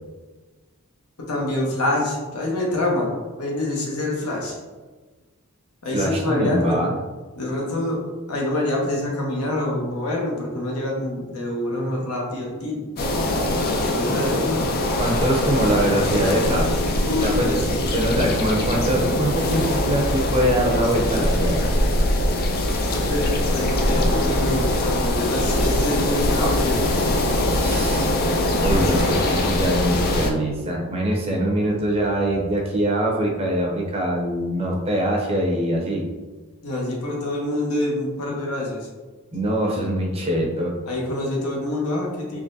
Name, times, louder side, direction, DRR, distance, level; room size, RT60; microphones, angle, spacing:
voice 1, 1.2-4.6 5.8-6.8 7.4-8.0 8.3-12.8 13.9-14.7 17.0-18.0 22.9-26.9 36.6-38.9 40.9-42.4, left 1 dB, 75° left, -1 dB, 0.9 m, -26 dB
voice 2, 5.9-6.9 14.1-14.4 14.9-16.8 17.2-17.6 17.9-21.8 27.6-28.0 28.6-36.0 39.3-40.8, right 1 dB, 25° right, -1 dB, 0.6 m, -23 dB
sound 1, 13.0-30.3, left 1 dB, 45° left, 0.4 m, -22 dB
3.7 x 3.1 x 2.6 m, 1.3 s
head